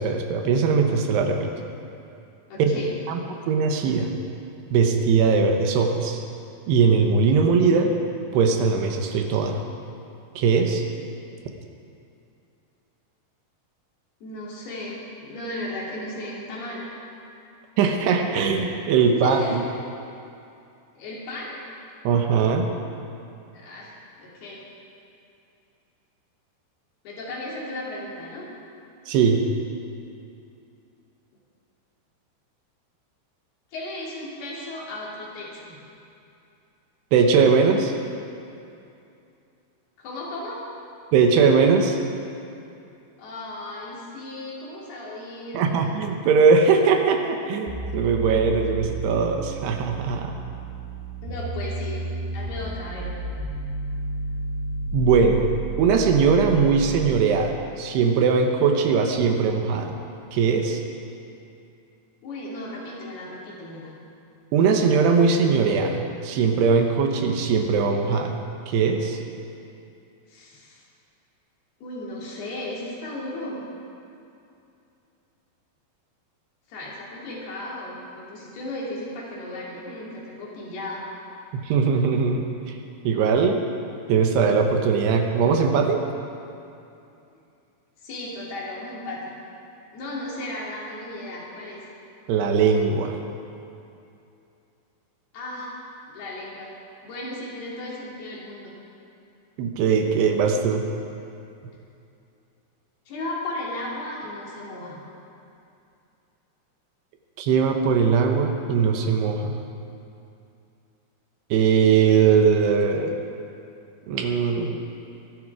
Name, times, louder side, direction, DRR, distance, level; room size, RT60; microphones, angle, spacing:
voice 1, 0.0-1.5 2.6-2.7 3.1-3.2 3.5-4.2 4.7-6.2 6.7-7.9 8.3-9.6 10.4-10.8 17.8-19.6 22.0-22.7 29.1-29.4 37.1-37.9 41.1-42.0 45.5-50.3 54.9-55.4 55.8-60.0 60.3-60.8 64.5-69.2 81.5-82.8 83.0-83.6 84.1-86.0 92.3-93.2 99.6-100.9 107.4-109.6 111.5-113.2 114.1-114.8, right 5 dB, 75° right, 4 dB, 3.1 m, -20 dB
voice 2, 2.5-2.9 14.2-16.8 19.0-19.6 20.9-21.6 23.5-24.6 27.0-28.5 33.7-35.8 40.0-40.6 43.2-45.7 51.2-52.0 52.3-53.1 62.2-63.9 70.3-70.8 71.8-73.6 76.7-81.1 88.0-89.3 89.9-91.8 95.3-95.7 96.1-96.7 97.0-98.7 103.1-105.0, left 1 dB, 65° left, -5 dB, 4.9 m, -35 dB
sound 1, 47.7-57.3, right 3 dB, 10° right, 2.9 m, -32 dB
23.0 x 11.5 x 4.9 m, 2.6 s
omnidirectional pair, 4.9 m